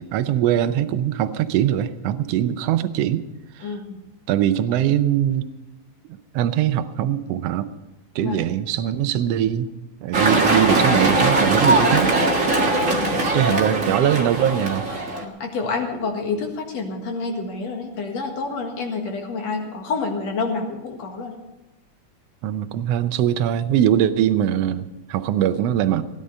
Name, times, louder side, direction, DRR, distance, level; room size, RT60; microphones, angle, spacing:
voice 1, 0.0-3.3 3.5-3.7 4.3-5.5 6.1-7.7 8.1-9.7 10.0-12.1 13.3-14.9 22.4-26.0, right 11 dB, 75° right, 12 dB, 1.6 m, -22 dB
voice 2, 3.6-4.0 8.2-8.4 12.9-13.3 15.2-21.4, left 4 dB, 65° left, 3 dB, 2.8 m, -28 dB
sound 1, 10.1-15.2, right 2 dB, 35° right, 1.5 m, -20 dB
17.0 x 11.0 x 5.3 m, 1.1 s
omnidirectional pair, 3.4 m